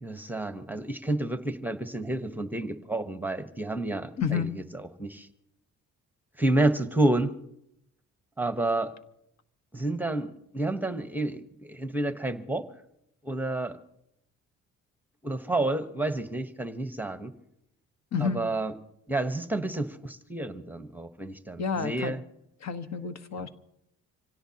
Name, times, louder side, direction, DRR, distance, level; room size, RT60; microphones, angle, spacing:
voice 1, 0.0-5.3 6.4-7.4 8.4-8.9 9.7-12.7 13.2-13.8 15.2-17.3 18.2-18.7 19.1-22.2 23.4-23.5, right 2 dB, 5° right, 8 dB, 1.1 m, -30 dB
voice 2, 4.2-4.5 18.1-18.4 21.6-22.2 22.6-23.5, left 6 dB, 60° left, 9 dB, 1.4 m, -29 dB
26.0 x 17.0 x 2.9 m, 0.78 s
cardioid pair, 90°, 30 cm